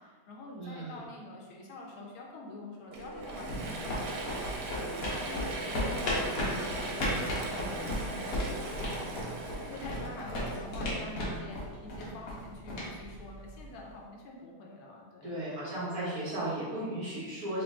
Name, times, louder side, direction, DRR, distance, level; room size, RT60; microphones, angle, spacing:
voice 1, 0.0-4.2 4.8-16.0, left 2 dB, 75° left, -1 dB, 1.4 m, -46 dB
voice 2, 0.6-1.0 15.2-17.6, right 1 dB, 45° right, -9 dB, 1.5 m, -35 dB
Mechanisms / Drill, 2.9-11.5, right 2 dB, 85° right, 1.6 m, -39 dB
sound 1, 3.0-13.8, left 1 dB, 55° left, 1.1 m, -36 dB
3.7 x 3.4 x 3.5 m, 1.6 s
omnidirectional pair, 2.4 m